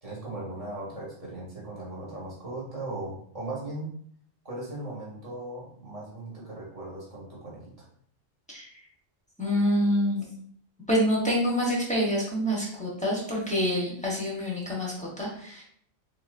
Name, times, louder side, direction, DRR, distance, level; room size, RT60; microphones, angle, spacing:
voice 1, 0.0-3.9 4.4-7.7, right 2 dB, 30° right, -6 dB, 1.4 m, -38 dB
voice 2, 9.4-10.2 10.9-15.6, equal, 5° left, -5 dB, 0.9 m, -26 dB
3.8 x 2.9 x 2.5 m, 0.62 s
omnidirectional pair, 1.3 m